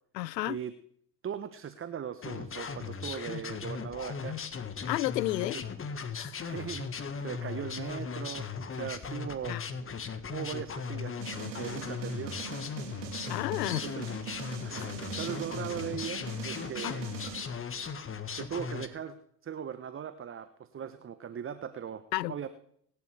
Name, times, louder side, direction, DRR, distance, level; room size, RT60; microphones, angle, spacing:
voice 1, 0.1-0.6 4.9-5.6 6.2-6.4 9.5-9.6 13.3-13.9 16.8-16.9 22.1-22.3, left 16 dB, 80° left, 0.6 m, -31 dB
voice 2, 1.2-4.4 5.4-5.6 6.4-6.9 7.2-9.6 10.3-11.2 11.5-12.4 13.8-14.1 14.6-17.1 18.3-19.2 19.4-22.5, right 8 dB, 25° right, 1.0 m, -39 dB
sound 1, 2.2-18.9, left 6 dB, 25° left, 1.7 m, -38 dB
sound 2, 11.2-17.4, right 7 dB, 80° right, 3.6 m, -42 dB
25.5 x 11.5 x 3.4 m
hypercardioid pair, 70°, 50 cm